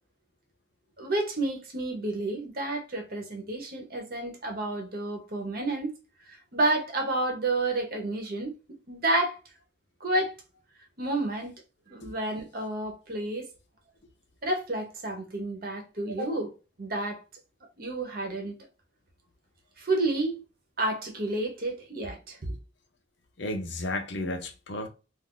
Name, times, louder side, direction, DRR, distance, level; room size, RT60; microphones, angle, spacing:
voice 1, 1.0-5.9 6.3-8.5 8.9-9.4 10.0-10.3 11.0-11.5 11.9-13.5 14.4-16.5 16.8-17.2 17.8-18.6 19.8-20.4 20.8-22.6, right 2 dB, 50° right, 0.9 m, -30 dB
voice 2, 23.4-24.9, left 1 dB, 65° left, 0.7 m, -33 dB
2.5 x 2.5 x 3.6 m
head